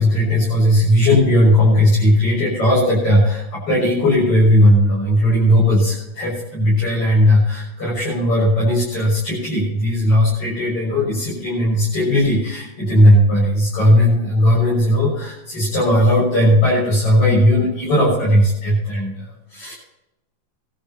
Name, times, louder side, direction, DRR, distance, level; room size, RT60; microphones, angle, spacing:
voice 1, 0.0-19.7, left 1 dB, 45° left, -7 dB, 7.6 m, -16 dB
22.0 x 13.0 x 3.0 m, 0.92 s
omnidirectional pair, 3.7 m